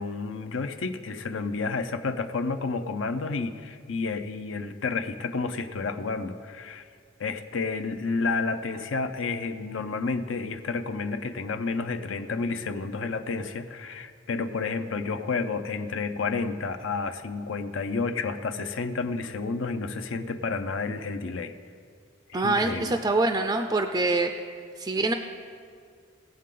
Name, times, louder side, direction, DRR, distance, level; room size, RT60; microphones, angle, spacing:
voice 1, 0.0-6.9 7.2-21.5 22.3-23.0, left 4 dB, 70° left, 9 dB, 0.6 m, -30 dB
voice 2, 22.3-24.3 24.8-25.1, right 2 dB, 20° right, 6 dB, 0.4 m, -25 dB
19.0 x 7.5 x 3.8 m, 2.2 s
head